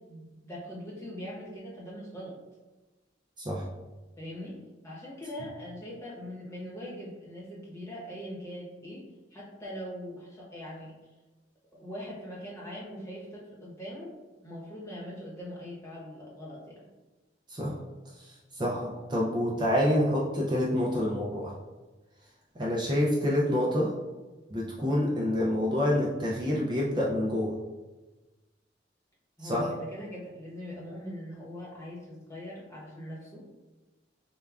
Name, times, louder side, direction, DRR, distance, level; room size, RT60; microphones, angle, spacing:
voice 1, 0.0-2.4 4.2-4.6 4.8-10.9 11.8-14.1 14.4-16.9 29.4-33.4, equal, 15° left, -5 dB, 1.0 m, -41 dB
voice 2, 18.2-21.5 22.6-23.9 24.5-27.6 29.4-29.7, left 1 dB, 25° right, -4 dB, 0.4 m, -27 dB
6.6 x 2.3 x 2.4 m, 1.2 s
head